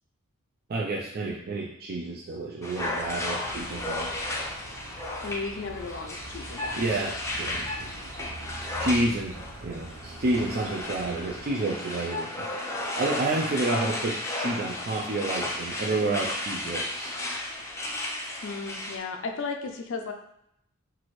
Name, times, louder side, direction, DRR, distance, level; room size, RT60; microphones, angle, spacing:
voice 1, 0.7-4.2 6.8-8.3 8.8-12.5 13.0-17.1, right 2 dB, 45° right, -3 dB, 0.5 m, -30 dB
sound 1, 2.6-19.0, left 1 dB, 15° left, 0.5 m, -34 dB
sound 2, 2.7-11.5, right 2 dB, 85° right, 0.7 m, -44 dB
voice 2, 5.2-7.0 17.9-18.0 18.4-20.1, left 4 dB, 65° left, 4 dB, 0.5 m, -35 dB
6.0 x 2.6 x 3.1 m, 0.75 s
head